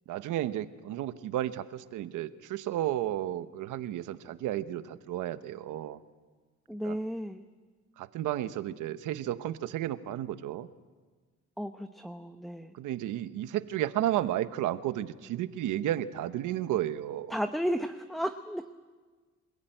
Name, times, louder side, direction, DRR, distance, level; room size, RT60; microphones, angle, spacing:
voice 1, 0.1-6.0 6.8-7.0 8.0-10.7 12.7-17.3, right 13 dB, 90° right, 12 dB, 1.0 m, -32 dB
voice 2, 6.7-7.4 11.6-12.7 17.3-18.7, equal, ahead, 7 dB, 0.9 m, -33 dB
27.5 x 16.5 x 9.1 m, 1.4 s
cardioid pair, 90°, 30 cm